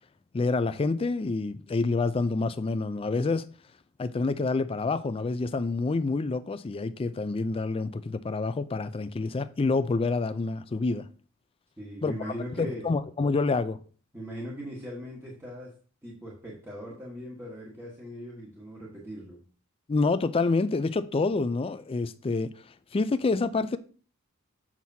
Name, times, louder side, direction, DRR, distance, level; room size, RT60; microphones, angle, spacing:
voice 1, 0.3-3.5 4.0-11.1 12.0-13.8 19.9-22.5 22.9-23.8, left 3 dB, 25° left, 0.4 m, -27 dB
voice 2, 11.8-12.9 14.1-15.7 16.0-19.4, equal, 10° right, 1.3 m, -40 dB
7.3 x 6.0 x 2.7 m
head